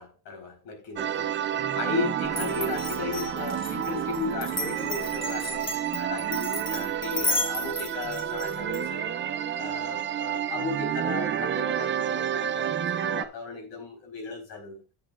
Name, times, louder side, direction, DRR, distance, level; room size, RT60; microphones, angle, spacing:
voice 1, 0.0-14.8, left 4 dB, 85° left, 4.1 m, -36 dB
sound 1, 1.0-13.2, right 9 dB, 30° right, 0.4 m, -30 dB
Glass, 2.3-8.8, left 2 dB, 30° left, 2.6 m, -33 dB
11.0 x 8.1 x 2.4 m
cardioid pair, 175°, 42 cm